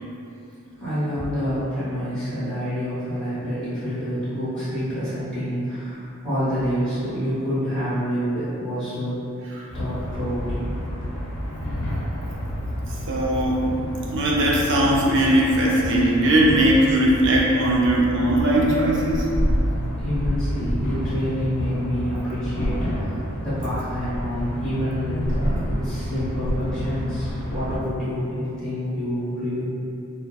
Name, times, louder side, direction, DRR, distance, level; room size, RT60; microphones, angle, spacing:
voice 1, 0.8-9.2 9.7-10.7 20.0-29.6, equal, 5° left, -15 dB, 0.8 m, -27 dB
sound 1, 9.7-27.8, equal, 70° left, 0.5 m, -29 dB
voice 2, 13.1-13.7 14.1-19.3, right 1 dB, 55° right, -4 dB, 0.4 m, -19 dB
2.6 x 2.1 x 2.2 m, 2.6 s
head